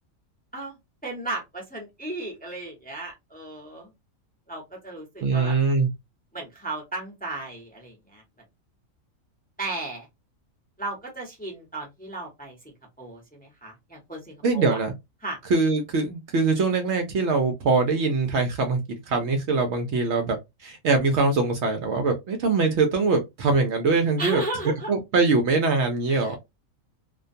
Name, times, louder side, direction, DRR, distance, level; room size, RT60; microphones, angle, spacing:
voice 1, 1.0-3.9 4.5-5.6 6.3-8.2 9.6-10.1 10.8-14.8 15.2-15.4 24.2-24.9 26.1-26.4, right 2 dB, 10° left, 0.6 m, -35 dB
voice 2, 5.2-5.9 14.4-14.9 15.5-24.4 24.9-26.4, right 3 dB, 65° right, 0.8 m, -23 dB
2.4 x 2.2 x 2.5 m
omnidirectional pair, 1.4 m